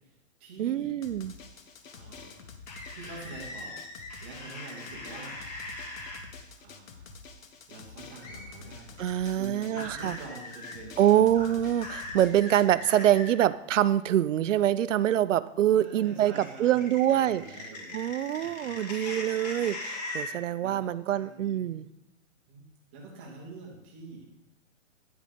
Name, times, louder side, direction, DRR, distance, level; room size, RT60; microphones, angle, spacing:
voice 1, 0.1-1.0 1.9-2.6 2.9-3.8 4.2-5.4 6.6-7.2 7.7-11.3 12.5-12.8 15.7-18.1 18.3-19.2 20.6-21.8 22.5-22.7 22.9-24.3, right 3 dB, 10° right, -2 dB, 0.6 m, -46 dB
voice 2, 0.6-1.3 9.0-10.2 11.0-17.4 17.9-21.8, right 11 dB, 70° right, 16 dB, 0.5 m, -25 dB
Drum, 1.0-12.7, left 4 dB, 80° left, 1.1 m, -48 dB
sound 1, 2.7-6.2 8.2-8.5 9.7-10.8 11.3-13.3 16.4-20.3, left 2 dB, 30° left, 1.3 m, -40 dB
9.7 x 5.3 x 5.1 m, 0.86 s
hypercardioid pair, 170°, 39 cm